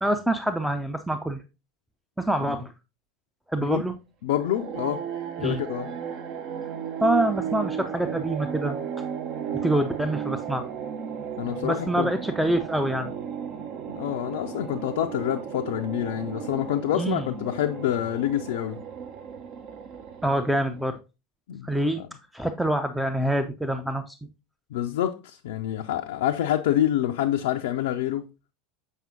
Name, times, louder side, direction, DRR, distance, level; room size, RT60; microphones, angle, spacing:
voice 1, 0.0-1.4 2.2-2.7 3.5-3.9 5.4-5.6 7.0-8.8 9.6-10.7 11.6-13.1 17.0-17.2 20.2-21.0 21.6-22.0 22.3-24.2, right 1 dB, 5° right, 0.5 m, -26 dB
voice 2, 4.2-5.1 5.4-5.9 11.4-12.1 13.9-18.8 21.5-21.7 22.0-22.1 24.7-28.3, left 12 dB, 60° left, 0.4 m, -27 dB
sound 1, 4.4-21.0, right 8 dB, 45° right, 0.7 m, -35 dB
7.3 x 5.3 x 2.6 m
figure-of-eight pair, 80°, 0 cm